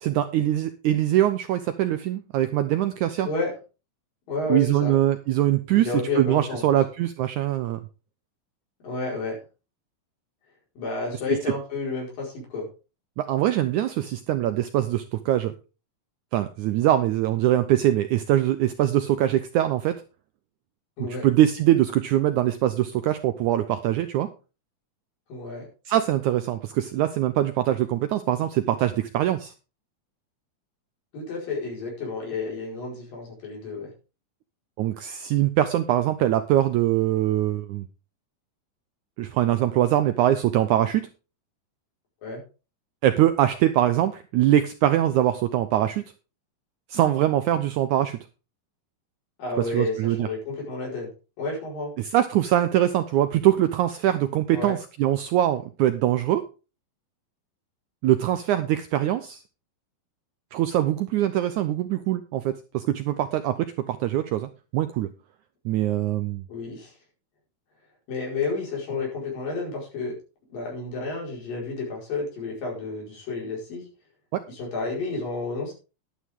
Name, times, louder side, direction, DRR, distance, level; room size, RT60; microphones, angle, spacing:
voice 1, 0.0-3.3 4.5-7.8 11.5-11.6 13.2-15.5 16.3-20.0 21.2-24.3 25.9-29.5 34.8-37.9 39.2-41.1 43.0-46.0 46.9-48.2 49.6-50.3 52.0-56.4 58.0-59.4 60.5-65.1 65.7-66.4 74.3-74.4, right 12 dB, 80° right, 10 dB, 1.8 m, -23 dB
voice 2, 3.2-3.5 4.3-4.9 5.8-6.6 8.8-9.4 10.8-12.7 21.0-21.3 25.3-25.7 31.1-33.9 42.2-42.4 49.4-51.1 51.4-51.9 54.5-54.8 66.5-66.9 68.1-70.2 70.5-73.8 74.5-75.7, left 3 dB, 70° left, -2 dB, 6.6 m, -31 dB
11.5 x 11.5 x 3.7 m, 0.33 s
omnidirectional pair, 4.2 m